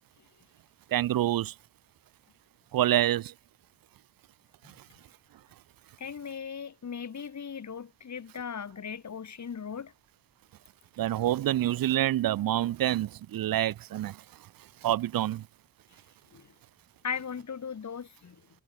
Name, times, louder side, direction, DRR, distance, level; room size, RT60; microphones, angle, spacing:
voice 1, 0.9-1.5 2.7-3.3 11.0-14.2 14.8-15.4, right 13 dB, 75° right, 0.5 m, -27 dB
voice 2, 6.0-9.9 16.3-16.5 17.0-18.4, left 7 dB, 55° left, 2.4 m, -38 dB
wide cardioid pair, 120°, 35 cm